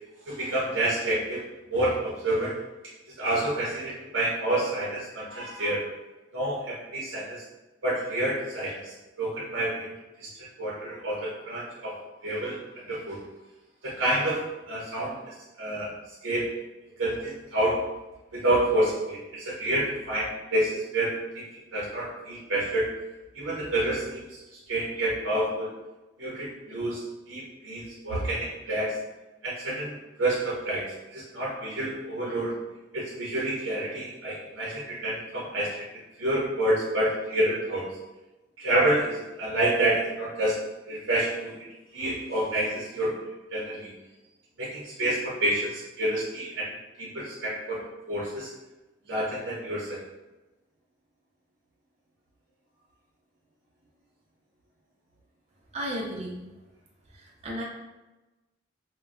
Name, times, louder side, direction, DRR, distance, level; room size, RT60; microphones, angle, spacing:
voice 1, 0.3-1.4 1.7-2.6 3.2-5.8 6.3-7.4 7.8-9.9 10.2-10.3 10.6-12.0 12.2-12.6 12.9-13.2 13.8-15.9 16.2-16.5 17.0-17.8 18.3-21.4 21.7-22.9 23.3-24.4 24.7-25.7 26.2-27.0 27.3-29.0 29.4-32.5 32.9-35.7 36.2-37.9 38.6-40.6 40.9-41.6 41.9-43.2 43.5-43.9 44.6-46.7 47.0-48.5 49.1-50.0, right 1 dB, 75° right, -6 dB, 0.7 m, -28 dB
voice 2, 55.7-56.4 57.1-57.6, equal, 35° right, -4 dB, 0.6 m, -34 dB
2.2 x 2.1 x 3.5 m, 1.1 s
head